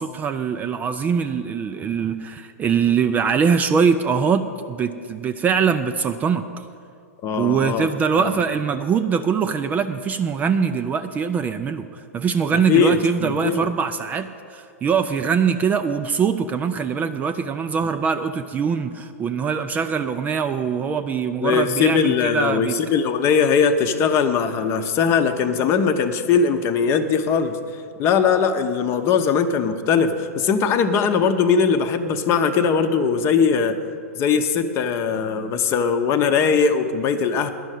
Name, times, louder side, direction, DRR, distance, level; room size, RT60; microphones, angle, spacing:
voice 1, 0.0-6.4 7.4-22.8, right 6 dB, 20° right, 9 dB, 0.4 m, -22 dB
voice 2, 7.2-7.9 8.2-8.3 12.7-13.7 21.4-27.6 28.0-30.1 30.4-33.8 34.2-37.5, left 6 dB, 35° left, 8 dB, 0.8 m, -20 dB
11.0 x 6.4 x 9.2 m, 2.4 s
figure-of-eight pair, 105°, 8 cm